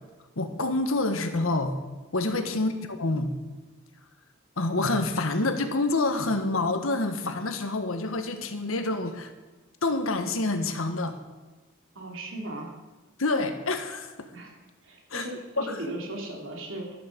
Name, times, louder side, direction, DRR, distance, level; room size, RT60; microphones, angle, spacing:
voice 1, 0.4-1.8 2.1-3.4 4.6-9.3 9.8-11.1 13.2-14.3 15.1-15.3 15.6-15.9, left 2 dB, 90° left, 7 dB, 1.5 m, -27 dB
voice 2, 12.0-12.7 14.3-14.6 14.8-17.1, right 1 dB, 75° right, 0 dB, 3.5 m, -37 dB
13.5 x 12.5 x 5.3 m, 1.2 s
head